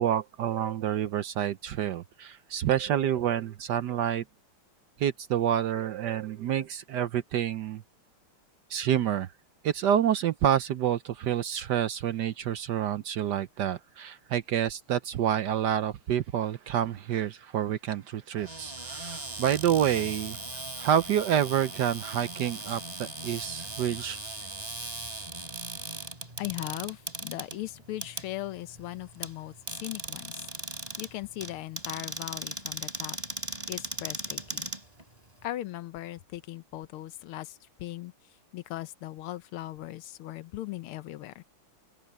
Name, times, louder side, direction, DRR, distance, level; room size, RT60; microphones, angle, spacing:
voice 1, 0.0-4.2 5.0-7.8 8.7-9.3 9.6-20.4 20.8-24.4, right 10 dB, 65° right, 1.1 m, -28 dB
Cupboard open or close, 18.4-35.4, right 2 dB, 15° right, 4.1 m, -39 dB
voice 2, 26.4-30.4 31.0-33.2 33.7-34.7 35.4-38.1 38.5-41.4, left 15 dB, 85° left, 1.7 m, -38 dB
open air
omnidirectional pair, 2.3 m